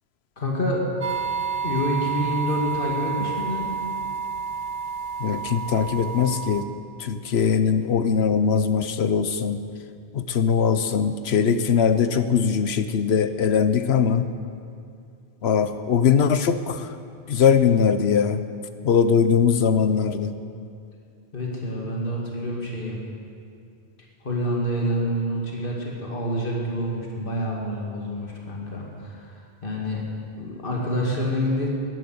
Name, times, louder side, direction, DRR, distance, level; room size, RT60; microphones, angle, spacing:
voice 1, 0.4-0.9 1.6-3.7 21.3-23.0 24.2-30.0 30.4-31.7, equal, 60° left, -2 dB, 2.4 m, -27 dB
sound 1, 1.0-6.6, right 6 dB, 40° right, 0.9 m, -29 dB
voice 2, 5.2-6.7 7.0-9.6 10.1-14.3 15.4-17.0 17.3-18.4 18.8-20.3, left 7 dB, 90° left, 11 dB, 1.1 m, -21 dB
13.5 x 11.0 x 9.5 m, 2.5 s
omnidirectional pair, 1.0 m